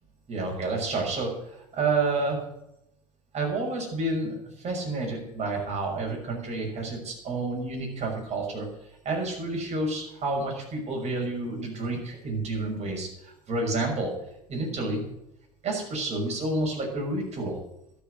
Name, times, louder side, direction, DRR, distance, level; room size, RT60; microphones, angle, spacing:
voice 1, 0.3-2.4 3.3-4.4 4.6-8.7 9.0-14.1 14.5-15.0 15.6-17.6, right 2 dB, 35° right, 0 dB, 6.4 m, -29 dB
12.5 x 7.2 x 9.9 m, 0.81 s
hypercardioid pair, 80°, 20 cm